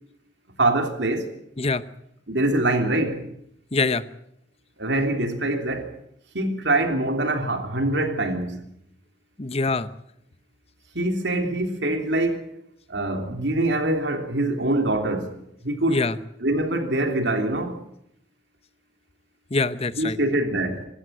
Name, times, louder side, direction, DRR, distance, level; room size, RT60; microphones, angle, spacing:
voice 1, 0.6-1.3 2.3-3.2 4.8-5.9 6.3-8.7 10.9-12.4 12.9-16.0 16.4-17.8 20.0-20.9, right 2 dB, 75° right, 3.3 m, -24 dB
voice 2, 3.7-4.0 9.4-9.9 15.9-16.2 19.5-20.2, left 3 dB, 35° left, 0.8 m, -24 dB
25.5 x 12.5 x 9.3 m
head